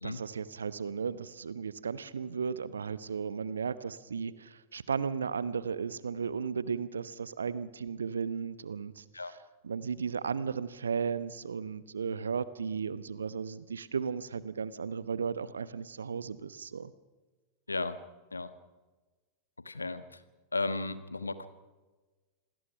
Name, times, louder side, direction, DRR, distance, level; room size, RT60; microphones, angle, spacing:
voice 1, 0.0-9.4 9.6-16.9, right 6 dB, 70° right, 16 dB, 1.0 m, -35 dB
voice 2, 19.6-20.2 20.5-21.5, left 3 dB, 80° left, 12 dB, 1.4 m, -34 dB
27.5 x 20.5 x 5.9 m, 1.3 s
figure-of-eight pair, 90°, 0 cm